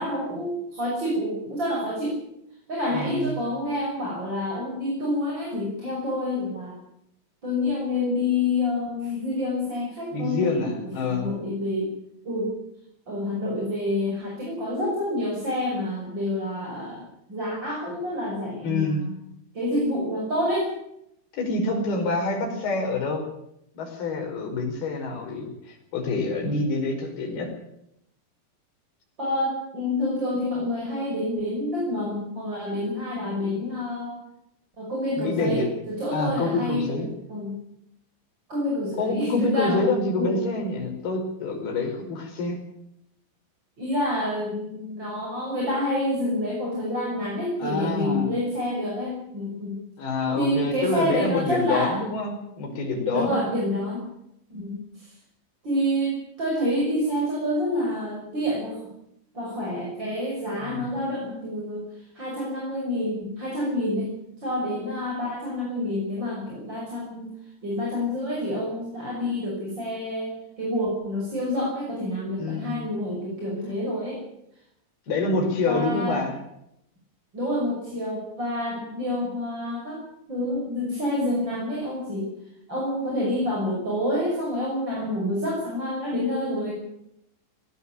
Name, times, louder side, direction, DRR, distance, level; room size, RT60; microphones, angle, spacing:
voice 1, 0.0-2.2 2.7-6.8 7.4-10.8 11.1-11.9 12.2-12.5 13.1-19.1 19.5-20.7 29.2-34.1 34.8-37.0 37.3-37.6 38.5-39.9 40.2-40.4 43.8-49.8 50.3-52.0 53.1-54.0 54.5-55.1 55.6-58.8 59.3-61.9 62.1-64.1 64.4-67.3 67.6-74.2 75.6-76.3 77.3-80.0 80.3-82.3 82.7-86.7, left 1 dB, 25° right, -2 dB, 6.5 m, -28 dB
voice 2, 2.9-3.3 10.1-11.3 18.6-19.0 21.3-23.2 23.7-27.5 35.1-35.7 36.1-37.1 39.0-42.6 47.6-48.4 50.0-53.4 60.6-61.0 72.4-72.8 75.1-76.3, left 3 dB, 60° left, 2 dB, 6.9 m, -27 dB
18.5 x 17.5 x 8.9 m, 0.78 s
omnidirectional pair, 5.2 m